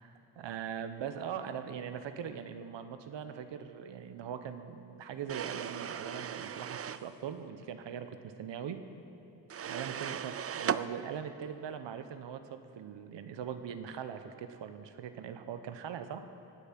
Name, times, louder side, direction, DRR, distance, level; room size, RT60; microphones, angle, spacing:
voice 1, 0.0-8.9 9.6-16.3, right 8 dB, 75° right, 9 dB, 1.0 m, -41 dB
sound 1, 5.3-7.1 9.5-10.9, right 8 dB, 35° right, 0.5 m, -37 dB
19.5 x 8.3 x 5.9 m, 2.8 s
cardioid pair, 60°, 45 cm